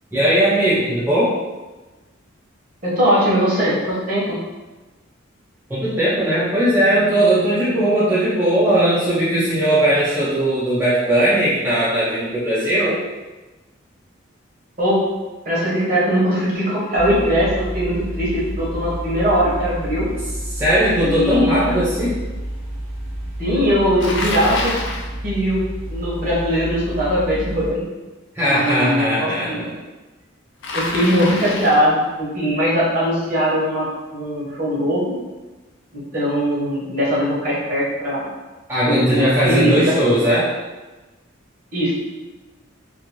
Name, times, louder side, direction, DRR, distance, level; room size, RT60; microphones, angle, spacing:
voice 1, 0.1-1.3 5.7-13.0 20.5-22.2 28.3-29.7 38.7-40.5, right 1 dB, 10° right, -11 dB, 0.5 m, -18 dB
voice 2, 2.8-4.4 14.8-15.0 15.4-20.1 21.0-21.8 23.4-24.7 25.2-25.6 25.9-27.8 28.5-29.6 30.7-35.0 35.9-38.2 38.9-40.3 41.7-41.9, equal, 45° right, -7 dB, 1.0 m, -20 dB
sound 1, 16.9-27.7, right 1 dB, 70° right, 0.6 m, -30 dB
Bicycle, 24.0-25.1 30.6-31.9, left 2 dB, 65° left, 0.4 m, -27 dB
2.6 x 2.6 x 2.9 m, 1.2 s
head